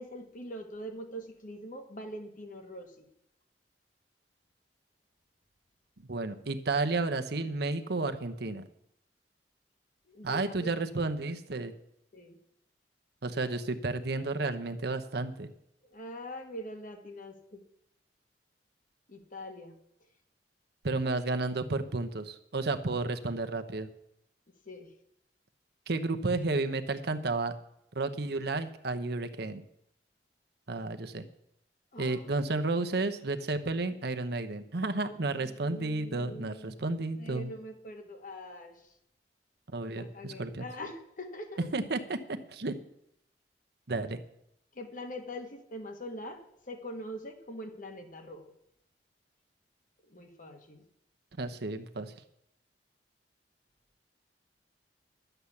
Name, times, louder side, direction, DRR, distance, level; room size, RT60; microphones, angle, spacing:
voice 1, 0.0-3.0 10.1-10.7 12.1-12.4 15.9-17.6 19.1-19.7 24.6-24.9 31.9-32.3 35.4-36.8 37.2-38.7 39.9-41.7 44.7-48.4 50.1-50.8, equal, 50° left, 5 dB, 1.7 m, -43 dB
voice 2, 6.1-8.6 10.2-11.7 13.2-15.5 20.8-23.9 25.9-27.5 27.9-29.6 30.7-31.2 32.0-37.5 39.7-40.6 41.7-42.2 42.5-42.8 43.9-44.2 51.4-52.1, right 3 dB, 65° right, 8 dB, 0.9 m, -32 dB
11.5 x 8.0 x 7.1 m, 0.76 s
head